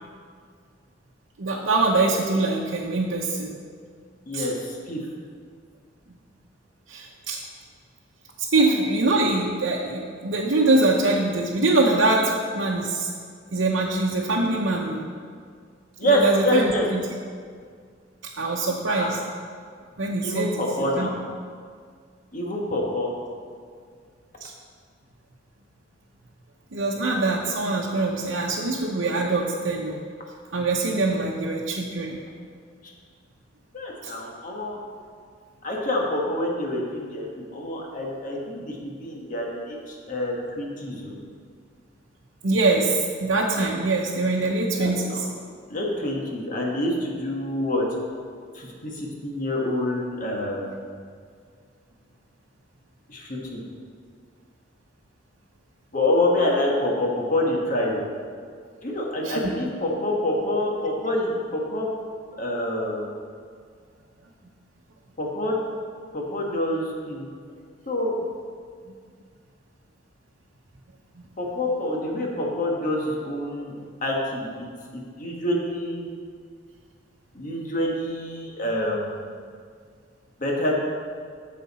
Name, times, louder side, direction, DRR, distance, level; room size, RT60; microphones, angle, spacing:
voice 1, 1.4-3.5 4.3-4.5 6.9-7.4 8.4-13.1 13.5-15.0 16.0-17.0 18.4-19.2 20.0-21.1 24.4-24.5 26.7-30.0 30.5-32.2 34.0-34.1 42.4-45.2 59.2-59.4, right 2 dB, 80° right, -3 dB, 0.8 m, -23 dB
voice 2, 4.3-5.0 16.0-16.8 18.9-19.1 20.2-21.2 22.3-23.1 33.7-34.8 35.6-41.1 44.8-45.3 45.7-47.8 48.5-50.7 53.1-53.6 55.9-58.1 58.8-61.9 62.4-63.1 65.2-65.5 66.1-67.3 67.9-68.1 71.4-74.5 75.2-76.0 77.3-79.2 80.4-80.7, left 1 dB, 45° left, -1 dB, 1.4 m, -26 dB
9.3 x 6.6 x 4.2 m, 2.1 s
head